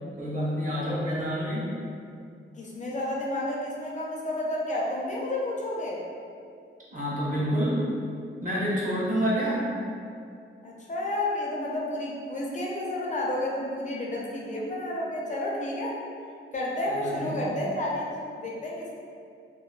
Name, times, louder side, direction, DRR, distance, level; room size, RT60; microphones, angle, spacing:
voice 1, 0.2-1.7 6.9-7.8 8.4-9.8 16.9-17.6, equal, 40° right, -7 dB, 0.6 m, -28 dB
voice 2, 2.5-6.0 10.6-15.9 16.5-18.9, left 1 dB, 35° left, -4 dB, 0.4 m, -31 dB
2.4 x 2.2 x 2.3 m, 2.4 s
wide cardioid pair, 135°, 21 cm